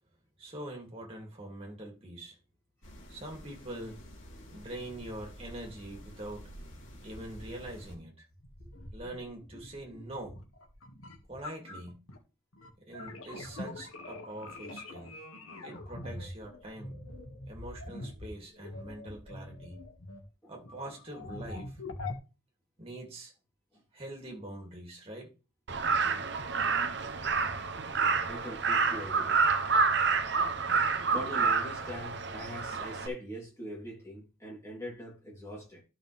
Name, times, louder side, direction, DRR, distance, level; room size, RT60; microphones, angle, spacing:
voice 1, 0.4-2.4 3.1-4.0 4.5-6.5 7.0-8.2 8.9-10.4 11.3-12.0 12.8-15.2 15.6-17.0 17.5-19.8 20.5-21.8 22.8-23.3 23.9-25.3, right 1 dB, 30° right, 2.8 m, -44 dB
sound 1, 2.8-8.0, equal, 65° left, 3.4 m, -49 dB
sound 2, 8.3-12.2 12.5-20.3 20.6-22.2, left 2 dB, 90° left, 1.8 m, -44 dB
Crow, 25.7-33.1, right 5 dB, 55° right, 0.8 m, -28 dB
voice 2, 28.2-29.4 31.1-35.8, equal, 15° left, 3.3 m, -42 dB
12.0 x 5.8 x 3.4 m
head